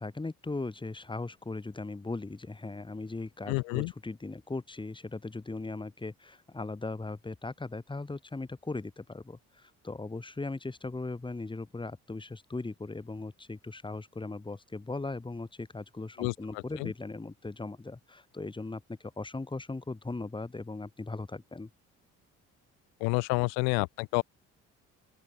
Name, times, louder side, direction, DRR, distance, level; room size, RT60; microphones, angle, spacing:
voice 1, 0.0-21.7, left 3 dB, 10° left, 1.4 m, -38 dB
voice 2, 3.5-3.9 16.2-16.3 16.8-16.9 23.0-24.2, left 40 dB or more, 65° left, 0.5 m, -28 dB
open air
figure-of-eight pair, 50°, 40 cm